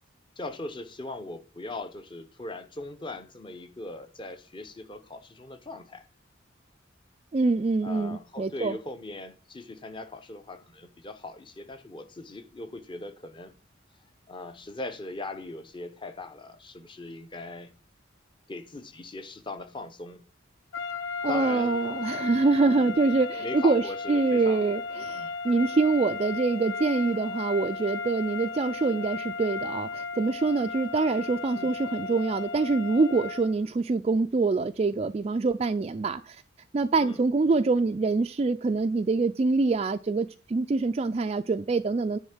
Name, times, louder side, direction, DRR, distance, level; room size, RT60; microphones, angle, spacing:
voice 1, 0.4-6.0 7.8-13.5 14.3-17.7 18.5-20.2 21.3-21.8 22.8-23.0 23.4-24.7 25.2-25.3 31.5-31.7 37.0-37.2, left 2 dB, 25° left, 0.8 m, -39 dB
voice 2, 7.3-8.8 21.2-36.4 36.7-42.2, right 3 dB, 30° right, 0.3 m, -25 dB
sound 1, 20.7-33.6, left 4 dB, 85° left, 0.8 m, -35 dB
10.0 x 3.7 x 7.1 m
head